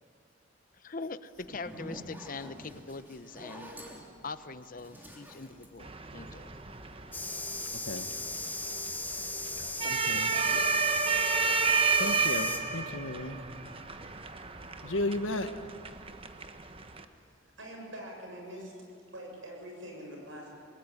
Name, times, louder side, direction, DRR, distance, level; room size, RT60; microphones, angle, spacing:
voice 1, 0.7-3.7 4.2-6.5 9.6-10.8, left 3 dB, 45° left, 12 dB, 0.9 m, -43 dB
Zipper (clothing), 1.3-6.6, equal, 10° right, 3.2 m, -48 dB
sound 1, 5.8-17.0, right 5 dB, 30° right, 1.2 m, -31 dB
sound 2, 7.1-12.6, left 2 dB, 10° left, 2.1 m, -37 dB
voice 2, 7.7-8.1 10.1-10.3 12.0-13.4 14.8-15.5, left 2 dB, 80° left, 9 dB, 1.4 m, -34 dB
voice 3, 17.2-18.7 19.1-20.5, equal, 70° right, 0 dB, 7.3 m, -44 dB
26.5 x 20.0 x 10.0 m, 2.3 s
head